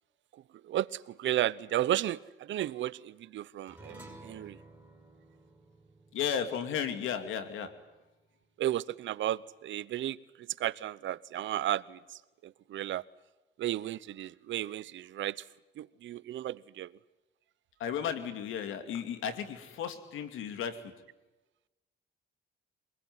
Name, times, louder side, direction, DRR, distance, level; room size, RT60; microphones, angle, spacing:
voice 1, 0.6-4.6 8.6-13.0 13.6-15.4 15.8-16.9, right 12 dB, 70° right, 19 dB, 0.8 m, -34 dB
sound 1, 3.7-8.4, right 1 dB, 10° right, 6.2 m, -54 dB
voice 2, 6.1-7.7 17.8-20.8, left 8 dB, 85° left, 9 dB, 2.6 m, -34 dB
25.0 x 20.5 x 9.5 m, 1.1 s
cardioid pair, 90°, 20 cm